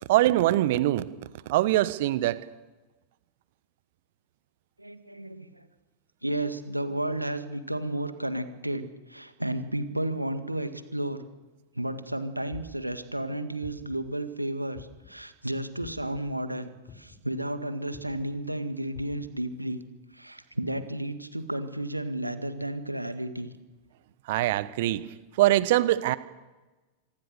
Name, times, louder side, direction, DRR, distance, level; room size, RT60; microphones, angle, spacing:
voice 1, 0.1-1.1 1.5-2.4 24.3-25.1 25.3-26.2, right 15 dB, 50° right, 16 dB, 1.2 m, -23 dB
voice 2, 4.8-5.7 6.2-11.2 11.8-19.8 20.1-23.5, right 1 dB, 85° right, 10 dB, 1.8 m, -32 dB
sound 1, 12.5-12.9 13.6-14.1 14.7-15.2 15.8-16.2 16.9-17.3 17.9-18.2 18.9-19.3, left 7 dB, 30° left, 5.5 m, -47 dB
26.0 x 19.0 x 6.7 m, 1.2 s
figure-of-eight pair, 90°, 0 cm